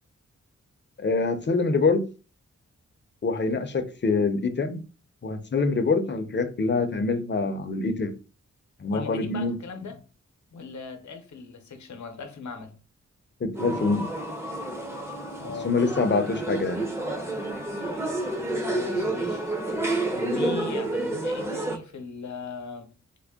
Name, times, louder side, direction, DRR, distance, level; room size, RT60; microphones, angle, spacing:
voice 1, 1.0-2.0 3.2-4.8 5.2-8.1 8.8-9.5 13.4-14.1 15.6-16.8, left 4 dB, 40° left, 0.6 m, -25 dB
voice 2, 8.9-10.0 10.5-12.7 15.4-15.7 18.6-19.4 20.1-22.9, left 4 dB, 75° left, 0.7 m, -38 dB
sound 1, 13.5-21.8, right 2 dB, 10° right, 0.6 m, -29 dB
3.5 x 2.1 x 3.5 m
wide cardioid pair, 95°, 29 cm